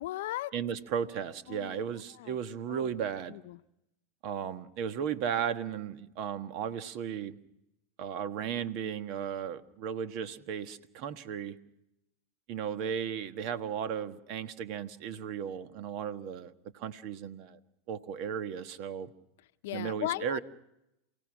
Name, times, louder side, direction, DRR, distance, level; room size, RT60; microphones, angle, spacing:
voice 1, 0.0-0.5 1.5-1.8 2.2-2.4 2.7-2.9 3.3-3.6 19.6-20.4, left 16 dB, 70° left, 13 dB, 0.7 m, -36 dB
voice 2, 0.5-3.4 4.2-7.4 8.0-11.6 12.5-17.6 17.9-19.1 19.7-20.4, right 8 dB, 55° right, 11 dB, 1.4 m, -35 dB
28.5 x 17.0 x 6.3 m, 0.86 s
hypercardioid pair, 100°, 0 cm